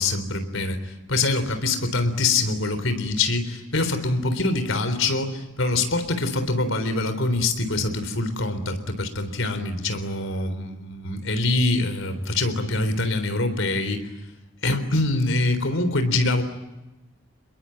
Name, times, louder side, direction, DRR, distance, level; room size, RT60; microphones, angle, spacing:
voice 1, 0.0-14.1 14.6-16.4, left 2 dB, 75° left, 9 dB, 3.8 m, -24 dB
28.0 x 22.0 x 8.9 m, 1.0 s
head